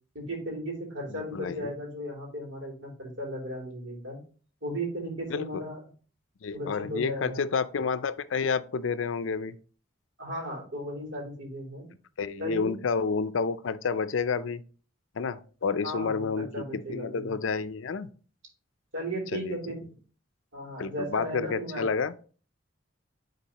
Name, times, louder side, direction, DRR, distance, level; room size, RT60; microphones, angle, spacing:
voice 1, 0.1-4.2 4.6-5.9 6.5-7.4 10.2-11.9 12.4-12.8 15.8-17.3 18.9-19.8 20.5-21.9, equal, 70° right, 3.0 m, -36 dB
voice 2, 1.3-1.7 5.3-5.5 6.4-9.5 12.2-14.6 15.2-16.6 16.9-18.1 19.3-19.6 20.8-22.1, left 5 dB, 80° left, 0.5 m, -29 dB
10.0 x 4.0 x 2.9 m
head